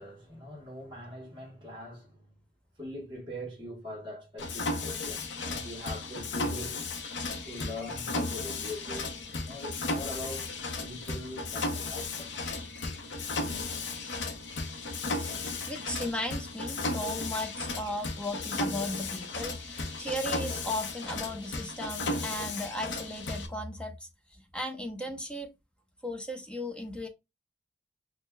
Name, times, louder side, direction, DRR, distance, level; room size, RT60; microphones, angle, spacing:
voice 1, 0.0-2.4 2.8-6.8 7.4-9.1 9.4-10.5 10.8-12.9 13.4-13.7, left 1 dB, 25° right, 1.1 m, -42 dB
Mechanisms, 4.4-23.5, left 3 dB, 85° left, 0.7 m, -35 dB
voice 2, 15.4-25.5 26.0-27.1, left 1 dB, 5° left, 0.6 m, -36 dB
6.3 x 2.1 x 2.2 m
head